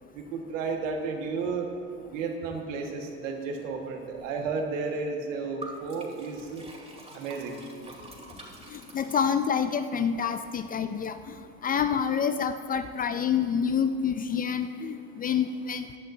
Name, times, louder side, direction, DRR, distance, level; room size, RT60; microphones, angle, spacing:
voice 1, 0.1-1.7 2.1-6.7 7.1-7.6, right 4 dB, 75° right, 2 dB, 1.6 m, -32 dB
Liquid, 5.6-9.8, right 2 dB, 15° right, 2.3 m, -46 dB
voice 2, 8.7-15.9, left 7 dB, 25° left, 10 dB, 0.3 m, -28 dB
16.0 x 10.0 x 2.7 m, 2.6 s
hypercardioid pair, 85°, 39 cm